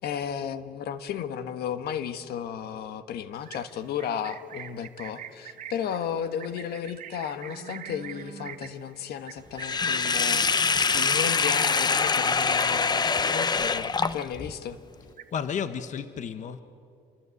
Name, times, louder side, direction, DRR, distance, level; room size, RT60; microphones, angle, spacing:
voice 1, 0.0-14.8, left 8 dB, 70° left, 1.5 m, -34 dB
Livestock farm animals working animals, 3.3-13.0 13.3-13.6 13.9-14.5 14.9-15.6, right 9 dB, 50° right, 1.7 m, -45 dB
Sink (filling or washing), 9.6-14.5, left 5 dB, 25° left, 0.8 m, -24 dB
voice 2, 15.3-16.6, left 7 dB, 45° left, 1.2 m, -32 dB
28.0 x 23.5 x 8.4 m
cardioid pair, 110°, 17 cm